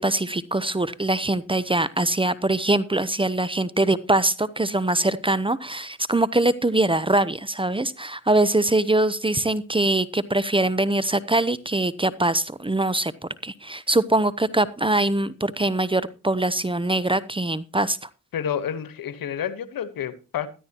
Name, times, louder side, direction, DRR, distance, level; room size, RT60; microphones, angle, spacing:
voice 1, 0.0-13.1 13.4-18.1, right 2 dB, 15° right, 0.8 m, -23 dB
voice 2, 18.3-20.5, left 9 dB, 75° left, 1.4 m, -29 dB
14.0 x 13.0 x 3.0 m
supercardioid pair, 50°, 35 cm